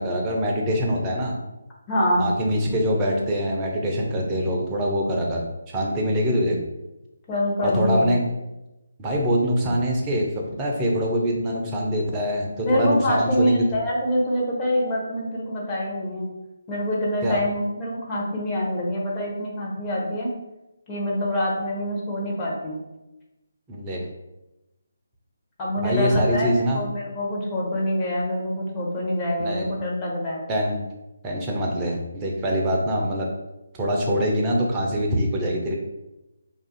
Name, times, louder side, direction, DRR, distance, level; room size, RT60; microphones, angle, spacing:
voice 1, 0.0-1.4 2.2-5.4 5.7-6.6 7.6-8.2 9.0-13.6 17.2-17.4 23.7-24.0 25.8-26.8 29.4-29.7 30.5-30.8 31.2-33.3 33.8-35.7, equal, 15° right, -1 dB, 0.5 m, -24 dB
voice 2, 1.9-2.3 7.3-8.1 12.6-16.3 16.7-20.3 20.9-22.8 25.6-30.4, equal, 20° left, -4 dB, 0.8 m, -25 dB
2.4 x 2.4 x 3.9 m, 0.97 s
figure-of-eight pair, 145°, 0 cm